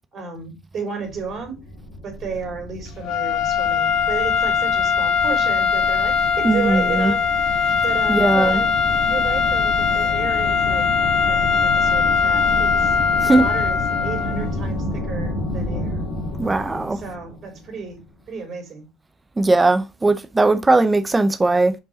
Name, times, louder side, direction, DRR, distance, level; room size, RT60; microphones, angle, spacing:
voice 1, 0.1-1.6 2.0-7.3 7.8-8.7 9.0-10.9 11.2-12.9 13.2-16.0 16.9-18.0 18.3-18.8, right 5 dB, 40° right, 3.4 m, -32 dB
sound 1, 1.0-18.1, left 1 dB, 40° left, 1.9 m, -30 dB
sound 2, 3.0-14.5, left 6 dB, 65° left, 0.7 m, -20 dB
voice 2, 6.4-7.1 8.1-8.6 13.2-13.4 16.4-17.0 19.4-21.7, right 2 dB, 15° right, 0.6 m, -18 dB
5.4 x 4.9 x 4.1 m
cardioid pair, 145°, 0 cm